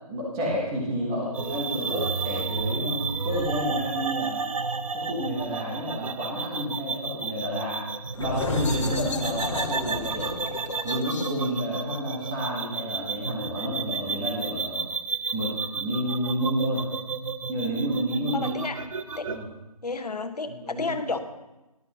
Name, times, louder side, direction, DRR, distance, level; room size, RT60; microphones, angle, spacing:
voice 1, 0.1-4.4 4.9-7.9 8.2-10.4 10.8-14.8 15.3-16.9 17.5-18.6 19.3-19.5 20.5-21.0, equal, 5° right, -3 dB, 0.9 m, -30 dB
voice 2, 0.9-1.2 18.3-18.8 19.1-19.3 19.8-21.2, left 4 dB, 85° left, 9 dB, 1.1 m, -32 dB
sound 1, 1.3-19.4, right 4 dB, 60° right, 0.7 m, -32 dB
sound 2, 8.1-13.5, left 3 dB, 50° left, 1.4 m, -33 dB
13.5 x 12.0 x 2.9 m, 1.0 s
figure-of-eight pair, 170°, 20 cm